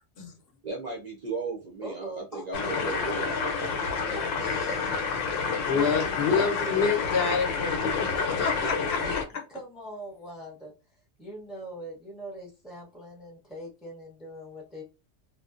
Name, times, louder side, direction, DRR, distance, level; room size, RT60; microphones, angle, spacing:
voice 1, 0.6-3.8, right 4 dB, 60° right, 0.4 m, -36 dB
voice 2, 1.8-2.5 4.0-4.9 5.7-7.0 8.6-9.2 9.5-10.7 11.2-14.8, equal, ahead, 0.6 m, -41 dB
sound 1, 2.5-9.2, left 5 dB, 85° left, 1.0 m, -29 dB
voice 3, 5.7-8.7, left 5 dB, 60° left, 0.8 m, -27 dB
2.6 x 2.1 x 2.4 m
omnidirectional pair, 1.3 m